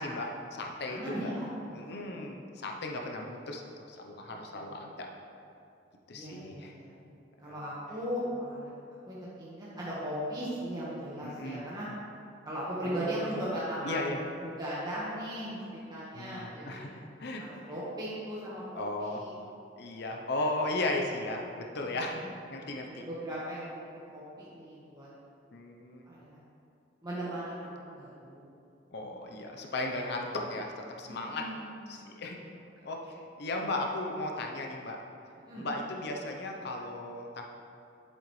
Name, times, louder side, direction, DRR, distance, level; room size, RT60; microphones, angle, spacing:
voice 1, 0.0-1.3 1.7-5.1 6.1-6.7 7.4-7.6 11.2-11.7 12.8-13.0 13.4-13.5 13.8-14.2 16.1-17.5 18.8-19.2 19.8-23.0 25.5-26.1 28.9-31.5 31.9-32.4 32.8-33.0 33.4-35.0 35.5-37.4, left 2 dB, 60° left, 1 dB, 0.8 m, -36 dB
voice 2, 0.9-2.1 4.3-4.8 6.1-6.9 7.4-8.7 9.0-11.9 12.4-16.9 17.4-19.3 21.8-22.2 22.5-23.8 24.1-25.1 26.0-26.4 27.0-28.4 31.1-32.0 32.8-32.9 35.5-35.7, equal, 20° right, -9 dB, 1.4 m, -38 dB
10.0 x 7.8 x 3.2 m, 2.6 s
head